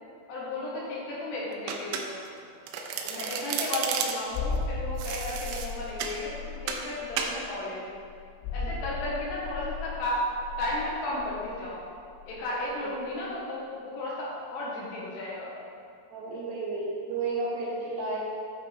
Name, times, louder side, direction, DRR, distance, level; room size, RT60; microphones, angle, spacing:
voice 1, 0.3-2.2 3.0-7.9 8.5-10.2 10.6-11.8 12.3-15.5, left 1 dB, 65° left, -5 dB, 3.4 m, -34 dB
Domestic sounds home sounds, 1.7-2.4 2.7-4.4 5.0-6.2 6.7-6.9 7.2-7.4, right 7 dB, 90° right, 3.2 m, -32 dB
sound 1, 4.3-12.7 13.0-13.2, left 4 dB, 85° left, 2.5 m, -36 dB
voice 2, 16.1-18.2, right 3 dB, 65° right, -5 dB, 3.1 m, -33 dB
13.0 x 8.0 x 3.5 m, 2.3 s
omnidirectional pair, 5.7 m